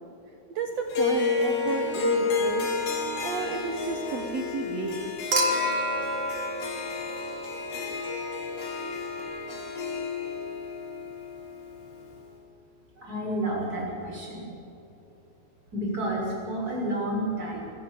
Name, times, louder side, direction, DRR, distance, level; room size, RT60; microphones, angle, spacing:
voice 1, 0.5-2.7 3.2-5.0, right 4 dB, 65° right, 5 dB, 1.7 m, -32 dB
Harp, 0.9-12.2, left 4 dB, 80° left, 5.6 m, -31 dB
Human group actions / Chink clink / Liquid, 5.3-7.7 9.2-9.3, equal, 40° right, 2.7 m, -29 dB
voice 2, 13.0-14.4 15.7-17.7, right 1 dB, 20° right, -3 dB, 6.8 m, -30 dB
25.5 x 14.5 x 8.6 m, 2.8 s
omnidirectional pair, 4.7 m